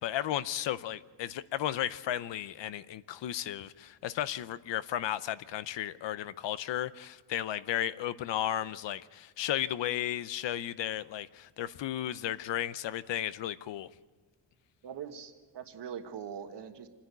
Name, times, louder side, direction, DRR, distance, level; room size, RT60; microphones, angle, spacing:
voice 1, 0.0-13.9, left 12 dB, 70° left, 0.7 m, -34 dB
voice 2, 14.8-16.9, right 8 dB, 65° right, 1.5 m, -42 dB
27.5 x 10.0 x 9.4 m
wide cardioid pair, 170°, 45 cm